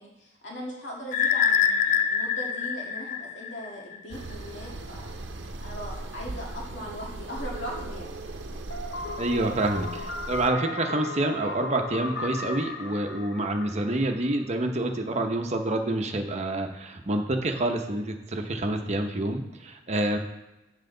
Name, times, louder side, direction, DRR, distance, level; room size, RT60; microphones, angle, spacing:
voice 1, 0.0-5.1 5.6-8.1, equal, 90° left, -3 dB, 1.9 m, -39 dB
sound 1, 1.1-4.0, left 7 dB, 45° left, 0.4 m, -25 dB
sound 2, 4.1-10.5, right 2 dB, 80° right, 0.7 m, -38 dB
sound 3, 8.7-14.5, left 2 dB, 70° left, 0.8 m, -36 dB
voice 2, 9.2-20.2, right 1 dB, 40° right, 4 dB, 0.8 m, -27 dB
7.4 x 6.5 x 3.9 m, 0.97 s
head